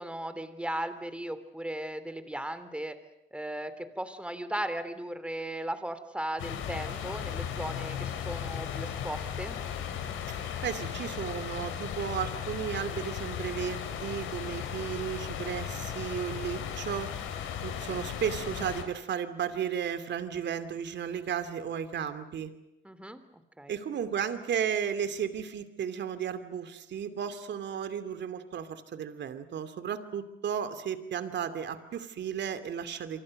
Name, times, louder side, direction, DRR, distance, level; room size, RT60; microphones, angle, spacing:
voice 1, 0.0-3.0 3.3-9.6 22.8-23.7, right 1 dB, 5° right, 11 dB, 3.1 m, -37 dB
sound 1, 6.4-18.8, left 9 dB, 85° left, 3.8 m, -36 dB
voice 2, 10.3-22.5 23.7-33.2, right 8 dB, 65° right, 11 dB, 2.6 m, -34 dB
28.0 x 24.5 x 6.6 m, 0.87 s
cardioid pair, 90°, 20 cm